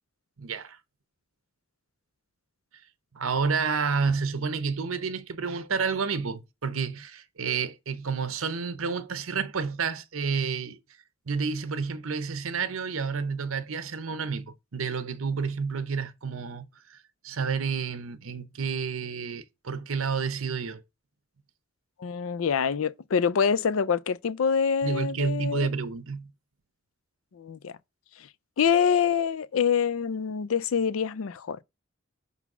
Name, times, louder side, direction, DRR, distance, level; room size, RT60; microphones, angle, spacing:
voice 1, 0.4-0.8 3.1-10.8 11.3-17.0 17.2-20.8 24.8-26.3, right 5 dB, 90° right, 0.8 m, -30 dB
voice 2, 22.0-25.7 27.4-27.7 28.6-31.6, left 7 dB, 85° left, 0.5 m, -25 dB
5.6 x 4.0 x 5.9 m
head